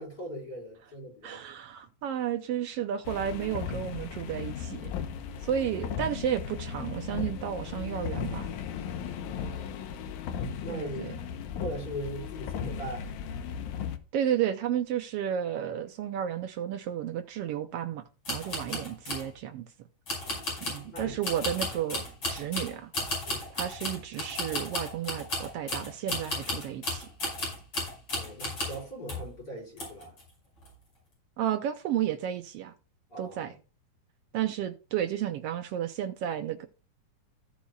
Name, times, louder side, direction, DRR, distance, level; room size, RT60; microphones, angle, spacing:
voice 1, 0.0-1.4 9.1-9.9 10.6-11.1 11.6-13.1 18.7-18.9 20.2-20.5 20.8-21.2 23.3-23.5 28.1-30.1 33.1-33.6, equal, 30° left, 5.9 m, -40 dB
voice 2, 1.2-4.9 5.4-8.5 10.7-11.2 14.1-19.7 20.6-22.0 22.3-22.9 23.5-27.1 31.4-32.7 33.2-33.5 34.3-36.7, right 10 dB, 80° right, 1.4 m, -32 dB
sound 1, 3.0-14.0, left 7 dB, 80° left, 2.3 m, -36 dB
sound 2, 18.2-19.3 20.1-28.8 29.1-29.3 29.8-30.2 30.6-30.7, left 2 dB, 45° left, 6.7 m, -34 dB
15.5 x 7.2 x 2.4 m
omnidirectional pair, 3.5 m